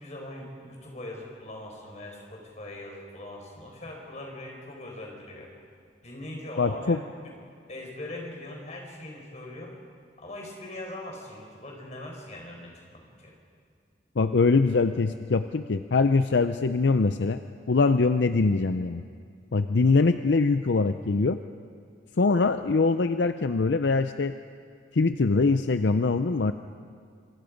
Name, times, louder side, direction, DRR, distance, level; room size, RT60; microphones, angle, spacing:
voice 1, 0.0-5.5 6.0-7.3 7.7-9.8 10.2-13.3, left 1 dB, 40° left, 0 dB, 4.9 m, -41 dB
voice 2, 6.6-7.0 14.2-17.4 17.7-19.0 19.5-21.4 22.2-24.4 24.9-26.5, left 3 dB, 75° left, 10 dB, 0.6 m, -23 dB
27.0 x 24.0 x 5.2 m, 2.3 s
head